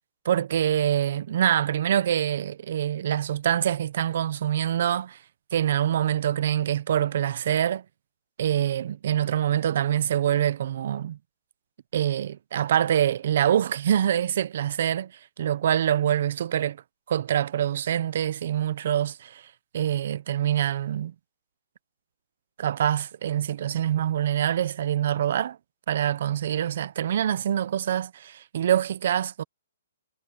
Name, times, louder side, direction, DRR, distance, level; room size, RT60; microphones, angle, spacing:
voice 1, 0.2-5.2 5.5-7.8 8.4-11.2 11.9-15.1 15.4-16.8 17.1-19.4 19.7-21.1 22.6-25.6 25.9-29.4, right 10 dB, 55° right, 0.9 m, -25 dB
hypercardioid pair, 155°, 0 cm